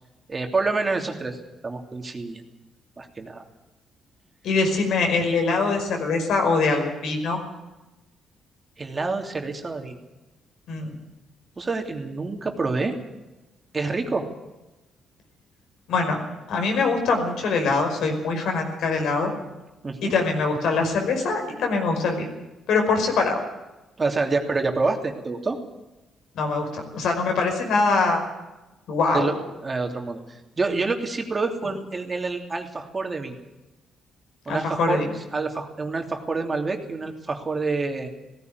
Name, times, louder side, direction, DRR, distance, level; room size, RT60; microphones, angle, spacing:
voice 1, 0.3-1.4 1.6-2.4 3.0-3.4 8.8-10.0 11.6-13.0 13.7-14.2 19.8-20.1 24.0-25.6 29.1-29.3 29.6-33.3 34.4-35.0 35.3-38.1, right 3 dB, 30° right, 3 dB, 3.0 m, -27 dB
voice 2, 4.4-7.4 10.7-11.0 15.9-16.2 16.5-19.3 20.0-22.3 22.7-23.4 26.3-28.2 28.9-29.3 34.5-35.1, left 4 dB, 75° left, 3 dB, 5.3 m, -23 dB
17.5 x 15.5 x 9.6 m, 1.0 s
cardioid pair, 90°, 0 cm